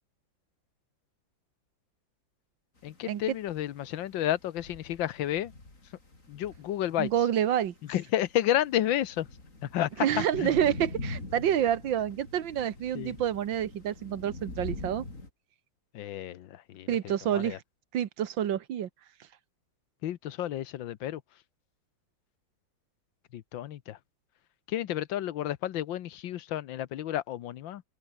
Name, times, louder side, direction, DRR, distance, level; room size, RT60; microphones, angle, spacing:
voice 1, 2.8-5.5 6.3-7.1 7.9-9.3 9.6-10.5 12.9-13.2 15.9-17.6 20.0-21.2 23.3-24.0 24.7-27.8, left 12 dB, 90° left, 1.7 m, -31 dB
sound 1, 2.8-15.3, left 2 dB, 40° left, 5.0 m, -44 dB
voice 2, 7.0-7.7 10.0-15.1 16.9-17.6 17.9-18.9, right 10 dB, 80° right, 1.9 m, -28 dB
open air
omnidirectional pair, 2.0 m